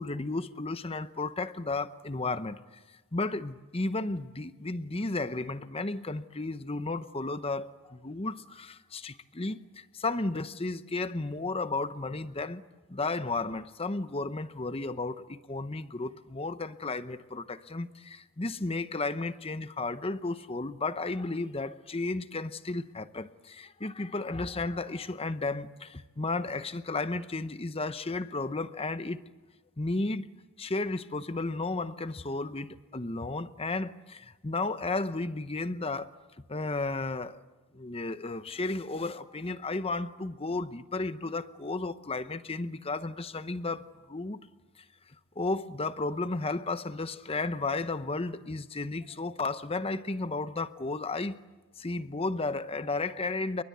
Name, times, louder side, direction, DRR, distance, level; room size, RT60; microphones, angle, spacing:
voice 1, 0.0-2.6 3.1-12.6 12.9-29.2 29.8-30.3 30.6-36.1 36.5-37.4 37.7-44.4 44.8-44.9 45.4-51.4 51.8-53.6, left 3 dB, 25° left, 0.8 m, -33 dB
29.5 x 23.0 x 8.1 m
head